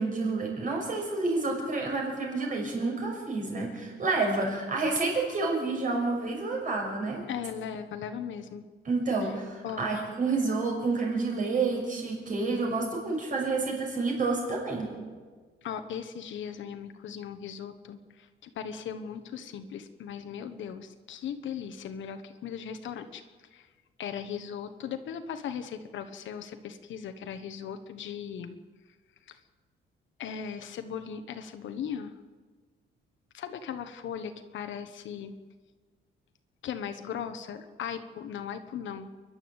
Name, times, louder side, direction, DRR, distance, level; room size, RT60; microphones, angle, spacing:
voice 1, 0.0-7.2 8.8-14.9, right 3 dB, 40° right, 0 dB, 6.0 m, -29 dB
voice 2, 7.3-8.6 9.2-9.3 9.6-9.8 15.6-23.2 23.5-23.7 24.0-28.6 29.3-29.4 30.2-32.1 33.3-35.3 36.6-39.1, left 8 dB, 65° left, 8 dB, 1.2 m, -38 dB
29.5 x 11.5 x 8.0 m, 1.5 s
cardioid pair, 165°, 21 cm